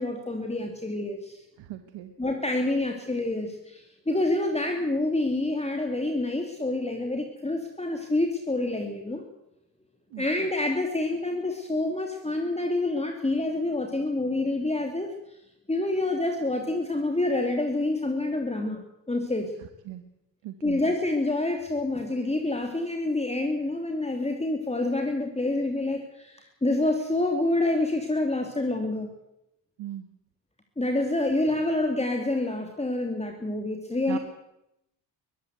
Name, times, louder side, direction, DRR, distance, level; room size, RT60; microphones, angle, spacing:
voice 1, 0.0-1.4 2.2-9.2 10.2-15.1 15.7-19.5 20.6-29.1 30.8-34.2, left 2 dB, 15° left, 3 dB, 2.7 m, -27 dB
voice 2, 1.6-2.1 10.1-10.2 19.9-20.0 20.4-20.8 29.8-30.1 34.1-34.2, right 14 dB, 90° right, 8 dB, 1.4 m, -38 dB
22.0 x 15.0 x 8.0 m, 0.84 s
cardioid pair, 75°, 45 cm